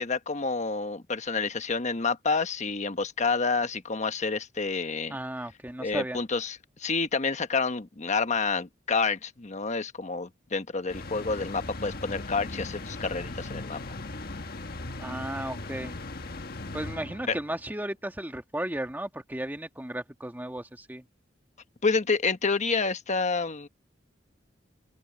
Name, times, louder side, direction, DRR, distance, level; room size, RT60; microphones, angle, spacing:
voice 1, 0.0-5.2 5.8-14.0 17.3-17.4 21.8-23.7, left 4 dB, 40° left, 1.2 m, -29 dB
voice 2, 5.1-6.2 15.0-15.9 16.7-21.0, right 1 dB, 10° right, 1.4 m, -34 dB
sound 1, 10.9-17.6, left 2 dB, 55° left, 1.5 m, -38 dB
open air
head